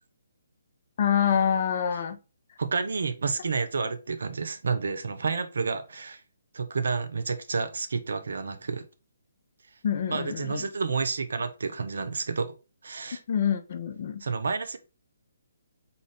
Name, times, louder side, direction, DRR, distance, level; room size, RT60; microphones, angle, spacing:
voice 1, 1.0-2.2 9.8-10.7 13.3-14.2, left 8 dB, 45° left, 0.5 m, -26 dB
voice 2, 2.6-6.2 6.5-8.9 10.1-12.5 12.8-13.2 14.2-14.8, right 4 dB, 70° right, 0.5 m, -30 dB
3.8 x 2.5 x 3.3 m
figure-of-eight pair, 140°, 0 cm